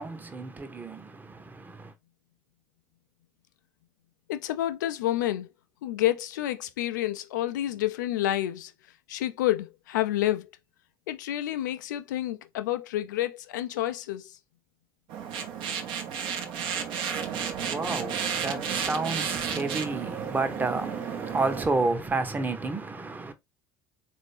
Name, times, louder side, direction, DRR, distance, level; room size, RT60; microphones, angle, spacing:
voice 1, 0.0-1.9 17.3-23.3, right 3 dB, 15° right, 0.9 m, -31 dB
voice 2, 4.3-5.5 5.8-8.7 9.1-10.5 11.1-14.3, left 13 dB, 70° left, 0.5 m, -29 dB
sound 1, 15.1-21.7, right 7 dB, 50° right, 0.8 m, -32 dB
4.0 x 2.6 x 3.4 m
figure-of-eight pair, 60°, 10 cm